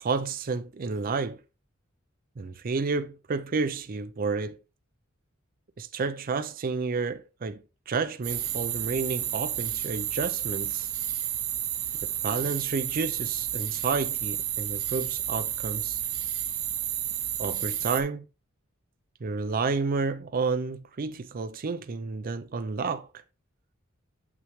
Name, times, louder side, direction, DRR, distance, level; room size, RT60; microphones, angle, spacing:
voice 1, 0.0-1.4 2.4-4.6 5.8-10.9 12.0-16.0 17.4-18.3 19.2-23.1, right 4 dB, 45° right, 0.5 m, -30 dB
sound 1, 8.2-18.0, right 11 dB, 80° right, 0.9 m, -31 dB
6.4 x 5.9 x 3.0 m
head